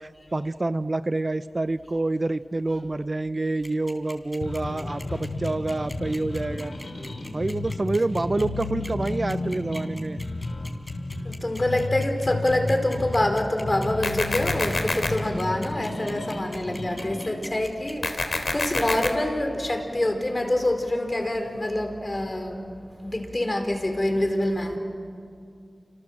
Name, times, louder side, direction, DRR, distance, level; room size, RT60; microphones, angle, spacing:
voice 1, 0.0-6.7 7.3-10.2, right 2 dB, 45° right, 13 dB, 0.6 m, -27 dB
sound 1, 3.6-18.1, left 1 dB, 15° left, 4.1 m, -42 dB
sound 2, 4.4-17.4, left 2 dB, 75° left, 3.7 m, -32 dB
voice 2, 11.2-22.7 23.0-24.8, left 1 dB, 35° left, 5 dB, 4.5 m, -26 dB
sound 3, 14.0-15.1 18.0-19.1, left 2 dB, 55° left, 2.9 m, -26 dB
29.0 x 27.0 x 7.6 m, 2.5 s
cardioid pair, 45°, 0 cm